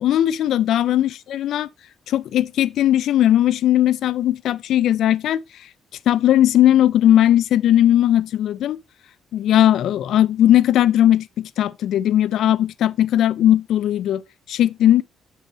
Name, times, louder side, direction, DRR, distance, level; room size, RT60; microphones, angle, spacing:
voice 1, 0.0-1.7 2.1-5.4 6.1-8.8 9.3-14.2 14.5-15.0, left 12 dB, 70° left, 0.3 m, -18 dB
7.1 x 5.5 x 2.9 m
cardioid pair, 130°, 0 cm